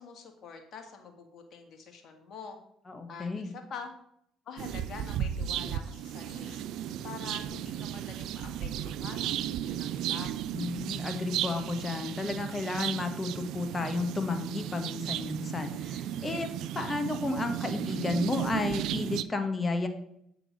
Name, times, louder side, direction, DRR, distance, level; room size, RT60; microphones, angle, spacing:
voice 1, 0.0-2.6 3.1-3.9 4.5-10.4, left 5 dB, 55° left, 4 dB, 1.7 m, -46 dB
voice 2, 2.9-3.5 10.5-16.5 16.7-19.9, left 3 dB, 25° left, 5 dB, 1.3 m, -32 dB
sound 1, 4.6-19.2, right 10 dB, 70° right, 0.3 m, -35 dB
8.0 x 3.9 x 6.2 m, 0.72 s
hypercardioid pair, 65°, 0 cm